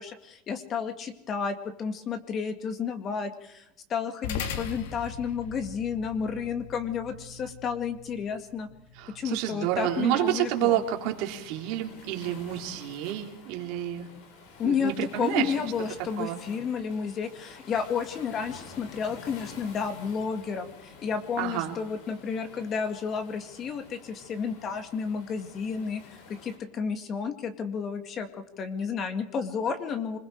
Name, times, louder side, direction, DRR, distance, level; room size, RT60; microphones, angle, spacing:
voice 1, 0.0-3.6 3.9-8.7 9.1-10.8 14.6-30.2, left 6 dB, 30° left, 8 dB, 2.2 m, -31 dB
sound 1, 4.2-12.9, left 6 dB, 80° left, 2.7 m, -42 dB
voice 2, 9.0-14.1 14.6-15.5 16.2-16.4 21.4-21.7, right 13 dB, 60° right, 3 dB, 3.4 m, -29 dB
Waves surf, 9.8-26.6, left 4 dB, 65° left, 7.0 m, -49 dB
26.5 x 21.0 x 4.8 m, 0.82 s
supercardioid pair, 145°, 0 cm